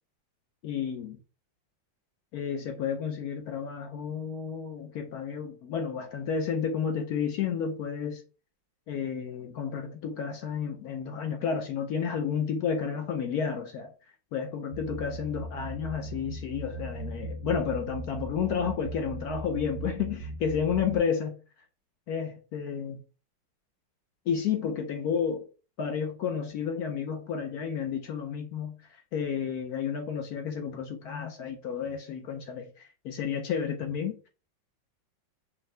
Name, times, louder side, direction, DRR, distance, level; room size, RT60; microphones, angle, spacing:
voice 1, 0.6-1.2 2.3-8.2 8.9-13.9 14.3-21.3 22.1-23.0 24.3-25.4 25.8-34.3, left 7 dB, 70° left, 1.0 m, -31 dB
sound 1, 14.7-21.0, right 2 dB, 55° right, 1.0 m, -38 dB
5.8 x 2.7 x 3.2 m
omnidirectional pair, 2.0 m